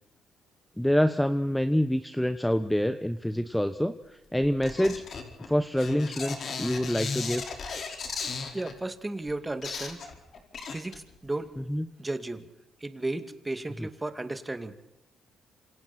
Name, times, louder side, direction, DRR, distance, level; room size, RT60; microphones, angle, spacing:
voice 1, 0.8-5.0 5.5-7.5 11.7-11.9 13.8-13.9, equal, 5° left, 10 dB, 1.0 m, -26 dB
sound 1, 4.6-8.7 9.3-9.4 9.6-11.3 11.6-11.7, left 5 dB, 55° left, 4.6 m, -36 dB
voice 2, 8.5-10.0 10.7-11.5 12.0-12.4 12.8-14.8, right 2 dB, 15° right, 9 dB, 2.3 m, -34 dB
27.5 x 27.0 x 4.4 m, 0.86 s
cardioid pair, 90°, 0 cm